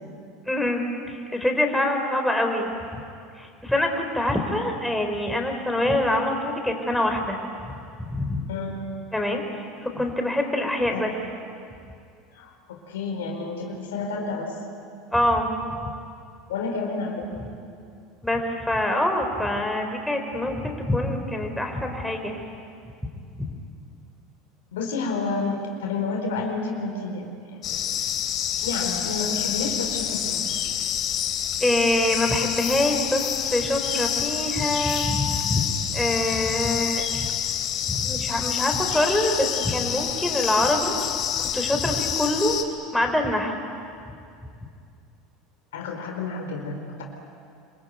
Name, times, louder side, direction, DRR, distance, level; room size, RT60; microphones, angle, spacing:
voice 1, 0.5-2.7 3.4-7.4 8.1-8.4 9.1-9.4 9.8-11.1 15.1-15.5 18.2-22.3 31.6-35.6 35.9-37.3 37.9-41.1 41.4-42.6 42.9-43.6, left 1 dB, 5° left, 3 dB, 4.4 m, -25 dB
voice 2, 8.5-8.8 9.9-10.0 10.9-11.0 12.3-14.5 16.5-17.4 24.7-27.8 28.6-30.4 45.7-47.0, left 3 dB, 80° left, 2 dB, 4.4 m, -30 dB
sound 1, 27.6-42.6, left 9 dB, 50° left, 3.2 m, -27 dB
27.0 x 22.5 x 9.4 m, 2.4 s
hypercardioid pair, 80°, 0 cm